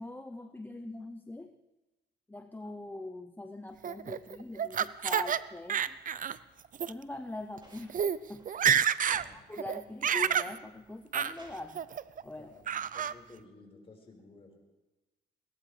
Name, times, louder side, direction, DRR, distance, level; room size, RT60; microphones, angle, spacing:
voice 1, 0.0-1.5 2.3-6.0 6.8-8.0 8.3-8.9 9.3-11.9 12.2-12.5, left 2 dB, 10° left, 6 dB, 0.7 m, -43 dB
Laughter, 3.8-5.4 5.7-6.4 6.7-6.9 7.6-7.7 7.9-8.2 8.5-9.2 9.6-10.5 11.1-11.3 11.7-12.2 12.7-13.1, right 8 dB, 45° right, 0.6 m, -29 dB
sound 1, 7.6-9.4 9.7-10.3 10.8-11.7 12.9-13.0, right 1 dB, 25° right, 5.3 m, -58 dB
voice 2, 9.0-9.4 9.8-10.0 12.3-14.6, left 3 dB, 30° left, 0 dB, 4.9 m, -55 dB
21.5 x 17.5 x 3.3 m, 1.1 s
cardioid pair, 90°, 20 cm